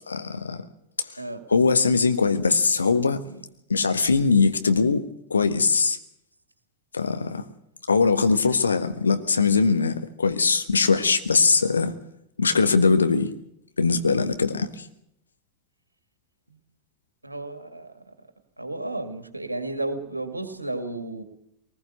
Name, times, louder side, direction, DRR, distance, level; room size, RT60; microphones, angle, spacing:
voice 1, 0.1-0.6 1.5-3.2 3.7-5.0 5.3-6.0 6.9-7.5 7.9-11.9 12.4-13.3 13.8-14.8, left 4 dB, 75° left, 1.4 m, -21 dB
voice 2, 17.2-18.0 18.6-21.2, right 2 dB, 85° right, 2.0 m, -33 dB
21.5 x 19.5 x 6.7 m
figure-of-eight pair, 90°, 0 cm